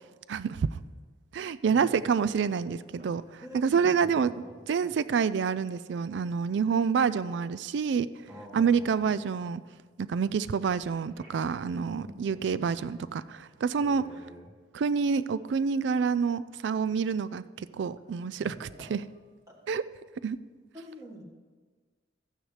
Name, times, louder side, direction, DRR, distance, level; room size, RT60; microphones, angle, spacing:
voice 1, 0.3-0.8 1.3-3.2 3.5-8.1 8.5-9.6 10.0-14.0 14.7-19.0 19.7-19.8 20.2-20.4, right 6 dB, 70° right, 16 dB, 0.3 m, -28 dB
Telephone, 1.8-2.4 3.0-3.1 4.9-5.0 5.4-5.6 10.9-11.7 18.8-19.0, left 3 dB, 90° right, 3.4 m, -51 dB
voice 2, 3.4-4.6 8.3-9.1 12.0-12.9 13.8-14.5 18.4-18.9 19.5-19.6 20.7-21.2, equal, 20° right, -2 dB, 1.6 m, -47 dB
13.5 x 9.1 x 3.3 m, 1.5 s
head